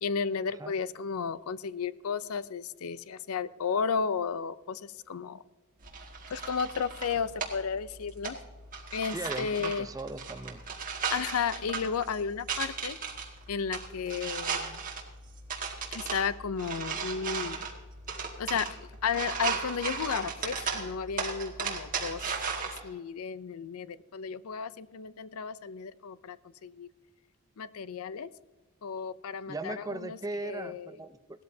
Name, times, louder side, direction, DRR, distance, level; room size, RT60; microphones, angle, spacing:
voice 1, 0.0-5.4 6.3-8.4 8.9-9.9 11.1-13.0 13.5-14.8 15.9-17.6 18.4-22.3 22.8-26.4 26.6-26.9 27.6-28.3 28.8-30.2 30.4-30.9, left 6 dB, 70° left, 16 dB, 0.5 m, -33 dB
sound 1, 5.8-22.8, right 5 dB, 40° right, 1.9 m, -36 dB
voice 2, 9.1-10.6 29.5-31.4, right 2 dB, 15° right, 10 dB, 0.5 m, -38 dB
17.5 x 13.0 x 2.7 m, 1.2 s
head